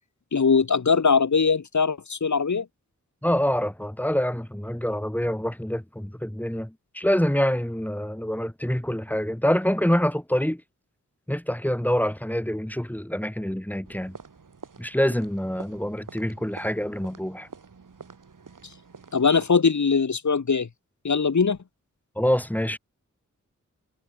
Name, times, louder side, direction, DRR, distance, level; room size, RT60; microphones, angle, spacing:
voice 1, 0.3-2.7 19.1-20.7 21.0-21.6, left 5 dB, 65° left, 2.0 m, -21 dB
voice 2, 3.2-10.6 11.3-14.2 14.8-17.5 22.2-22.8, equal, 5° left, 2.9 m, -26 dB
sound 1, 13.8-19.5, right 5 dB, 80° right, 7.6 m, -47 dB
wide cardioid pair, 65°, 31 cm